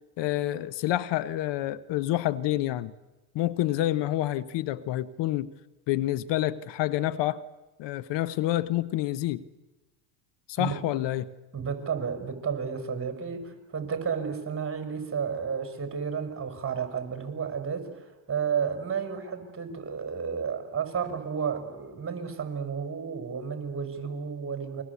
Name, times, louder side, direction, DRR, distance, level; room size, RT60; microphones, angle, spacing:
voice 1, 0.2-2.9 3.3-5.5 5.9-7.4 7.8-9.4 10.5-11.3, left 14 dB, 60° left, 1.1 m, -28 dB
voice 2, 11.5-24.8, right 6 dB, 25° right, 5.4 m, -32 dB
28.5 x 23.0 x 8.3 m
supercardioid pair, 85°, 47 cm